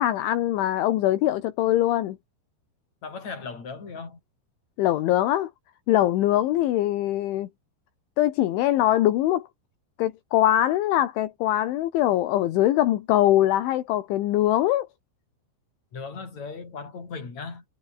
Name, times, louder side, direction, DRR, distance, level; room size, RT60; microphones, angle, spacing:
voice 1, 0.0-2.2 4.8-5.5 5.9-7.5 8.2-9.5 10.0-14.9, left 13 dB, 75° left, 3.8 m, -22 dB
voice 2, 3.0-4.2 15.9-17.6, left 4 dB, 35° left, 6.7 m, -37 dB
omnidirectional pair, 5.8 m